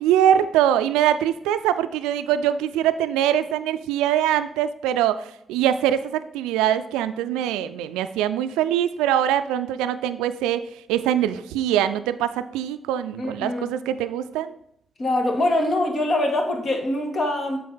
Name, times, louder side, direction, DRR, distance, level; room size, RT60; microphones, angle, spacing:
voice 1, 0.0-10.6 10.9-14.5, right 10 dB, 90° right, 12 dB, 0.3 m, -23 dB
voice 2, 13.2-13.7 15.0-17.6, left 1 dB, 55° left, 3 dB, 1.8 m, -23 dB
7.6 x 4.5 x 5.4 m, 0.75 s
hypercardioid pair, 45°, 0 cm